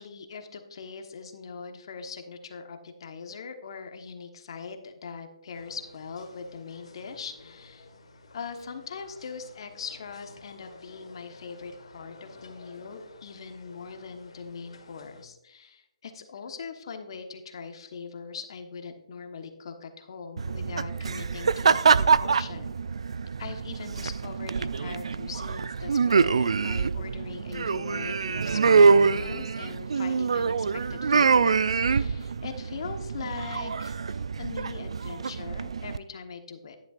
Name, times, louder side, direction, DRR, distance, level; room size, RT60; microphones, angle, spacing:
voice 1, 0.0-7.9 8.3-22.7 23.4-36.8, left 5 dB, 55° left, 6 dB, 1.2 m, -41 dB
sound 1, 5.5-15.3, left 2 dB, 70° left, 1.5 m, -52 dB
sound 2, 20.4-36.0, right 5 dB, 70° right, 0.3 m, -25 dB
10.5 x 9.0 x 2.5 m, 0.89 s
figure-of-eight pair, 145°, 3 cm